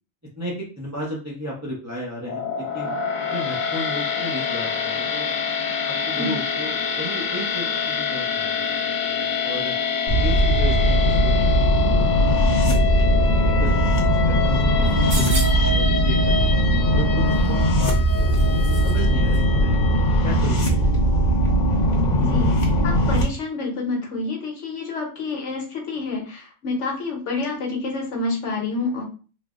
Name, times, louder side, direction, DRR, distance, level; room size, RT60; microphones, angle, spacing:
voice 1, 0.4-2.4 2.7-2.9 3.3-5.3 5.8-9.7 10.2-12.9 13.2-13.9 14.3-16.5 16.9-19.8 20.2-21.1, equal, 25° right, -5 dB, 0.3 m, -34 dB
sound 1, 2.2-20.5, left 6 dB, 85° left, 1.0 m, -27 dB
sound 2, 10.1-23.2, right 1 dB, 45° left, 0.6 m, -19 dB
sound 3, 14.8-15.8 17.3-19.0 19.3-19.4, right 1 dB, 75° right, 1.5 m, -32 dB
voice 2, 22.2-29.0, left 3 dB, 65° left, -1 dB, 1.1 m, -28 dB
3.2 x 2.0 x 2.3 m, 0.36 s
omnidirectional pair, 1.4 m